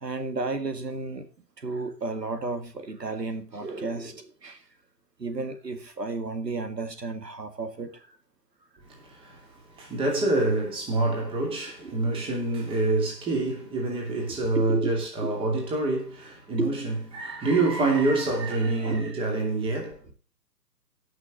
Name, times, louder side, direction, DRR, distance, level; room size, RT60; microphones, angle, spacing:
voice 1, 0.0-1.3 1.6-4.7 5.2-8.2 11.8-12.1 14.6-15.0 15.2-15.3 16.6-16.7 18.8-19.0, right 3 dB, 75° right, 2.0 m, -32 dB
voice 2, 8.9-20.0, right 2 dB, 10° right, 2.7 m, -26 dB
17.5 x 6.2 x 3.8 m
figure-of-eight pair, 135°, 49 cm